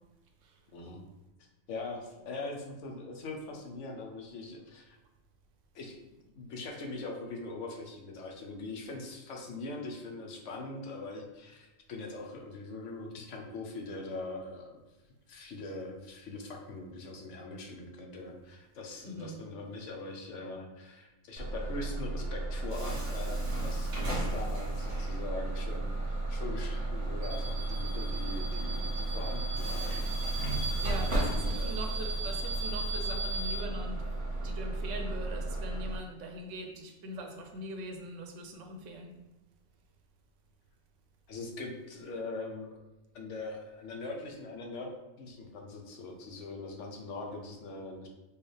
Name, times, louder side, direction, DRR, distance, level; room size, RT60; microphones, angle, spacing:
voice 1, 0.7-1.0 1.7-5.0 5.7-14.8 15.3-30.1 31.1-31.8 41.3-42.7 43.1-44.9 45.2-48.1, left 2 dB, 85° left, 2 dB, 1.1 m, -42 dB
voice 2, 19.0-19.4 30.8-34.0 34.4-39.1, right 1 dB, 90° right, 3 dB, 1.0 m, -42 dB
Bus / Alarm, 21.4-36.0, right 2 dB, 75° right, 1.4 m, -33 dB
4.7 x 2.4 x 3.2 m, 1.0 s
omnidirectional pair, 1.2 m